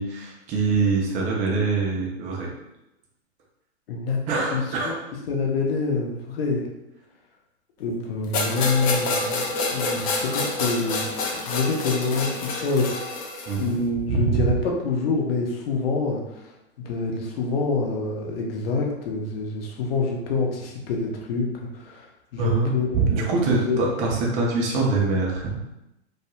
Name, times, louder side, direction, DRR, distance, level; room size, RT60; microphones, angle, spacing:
voice 1, 0.0-2.5 4.3-5.0 13.5-13.8 14.1-14.5 22.4-25.6, right 3 dB, 20° right, -2 dB, 0.4 m, -24 dB
voice 2, 3.9-4.2 4.5-5.0 5.3-6.7 7.8-12.9 13.6-16.5 16.8-23.8, left 4 dB, 60° left, 0 dB, 0.8 m, -27 dB
sound 1, 8.3-13.7, left 3 dB, 35° left, 0.4 m, -27 dB
2.3 x 2.2 x 2.8 m, 0.92 s
hypercardioid pair, 120°, 33 cm